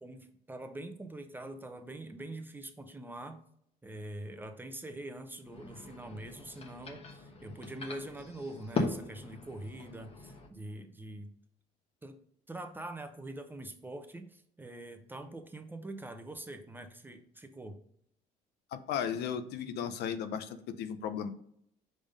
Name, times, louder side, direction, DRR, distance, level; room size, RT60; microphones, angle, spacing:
voice 1, 0.0-3.4 3.8-11.3 12.0-12.2 12.5-17.8, right 1 dB, 10° right, 7 dB, 0.6 m, -44 dB
sound 1, 5.4-10.5, left 3 dB, 35° left, 1.1 m, -39 dB
voice 2, 18.7-21.3, left 8 dB, 75° left, 10 dB, 0.6 m, -35 dB
5.2 x 3.5 x 5.2 m, 0.69 s
cardioid pair, 110°, 17 cm